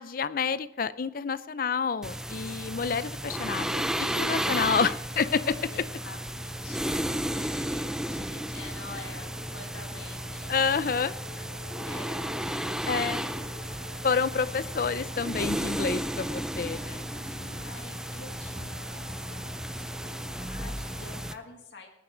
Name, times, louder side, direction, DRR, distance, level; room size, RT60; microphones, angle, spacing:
voice 1, 0.0-5.7 10.5-11.2 12.9-13.3 14.0-17.1, left 5 dB, 50° left, 15 dB, 0.5 m, -29 dB
sound 1, 2.0-21.3, right 1 dB, 5° right, 0.4 m, -33 dB
sound 2, 2.3-21.3, left 1 dB, 20° left, 5.2 m, -47 dB
voice 2, 2.5-2.9 5.7-6.9 7.3-10.5 11.8-12.2 16.8-21.9, left 3 dB, 75° left, 1 dB, 1.9 m, -48 dB
18.5 x 9.9 x 3.8 m, 0.90 s
head